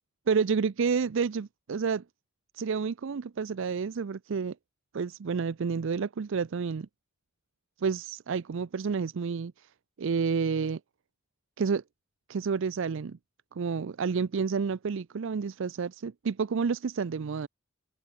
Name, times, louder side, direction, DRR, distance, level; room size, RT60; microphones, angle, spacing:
voice 1, 0.3-2.0 2.5-4.5 4.9-6.9 7.8-9.5 10.0-10.8 11.6-11.8 12.3-13.2 13.5-17.5, right 5 dB, 65° right, 0.5 m, -29 dB
open air
head